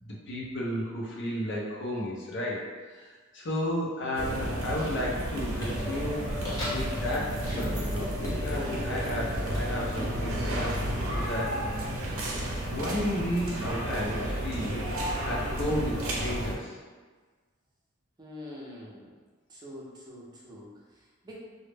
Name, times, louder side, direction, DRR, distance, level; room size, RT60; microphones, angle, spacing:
voice 1, 0.0-11.5 11.8-12.4 12.7-14.8 15.3-16.8, left 1 dB, 60° left, -4 dB, 0.5 m, -33 dB
sound 1, 4.1-16.5, right 1 dB, 80° right, 0.5 m, -32 dB
sound 2, 5.3-11.7, equal, 20° left, 0.7 m, -41 dB
sound 3, 5.4-13.1, left 2 dB, 80° left, 0.9 m, -43 dB
voice 2, 18.2-19.1 19.5-21.3, left 1 dB, 20° right, -4 dB, 0.5 m, -45 dB
2.1 x 2.0 x 3.2 m, 1.4 s
head